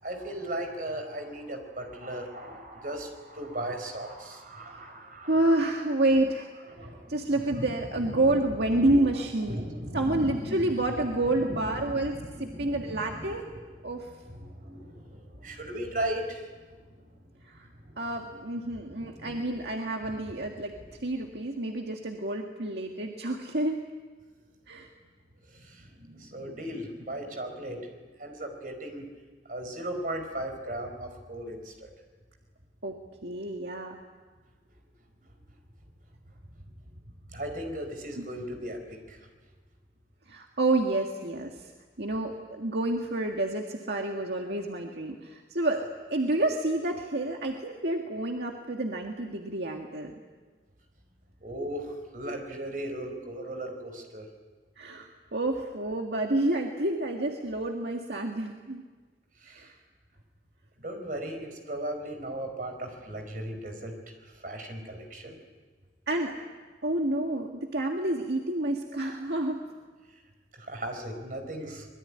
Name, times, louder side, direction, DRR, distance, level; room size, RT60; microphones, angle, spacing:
voice 1, 0.0-5.7 6.7-7.7 8.0-9.0 9.4-10.7 11.0-13.3 14.3-16.8 18.0-18.1 18.9-19.6 20.0-20.1 20.7-20.8 25.5-27.8 28.2-29.0 29.5-31.7 37.3-39.2 51.4-54.3 59.4-59.7 60.8-63.9 64.4-65.3 70.6-71.9, right 1 dB, 50° right, 5 dB, 4.9 m, -37 dB
voice 2, 5.3-6.5 7.1-9.6 9.9-13.5 13.8-14.1 17.4-17.7 18.0-20.7 21.0-23.8 24.7-24.9 32.8-32.9 33.2-34.0 38.2-38.3 40.3-41.7 42.0-45.8 46.1-50.2 54.8-58.8 59.5-59.7 66.1-66.4 66.8-69.6, right 2 dB, 75° right, 1 dB, 1.9 m, -29 dB
25.0 x 22.0 x 9.9 m, 1.4 s
head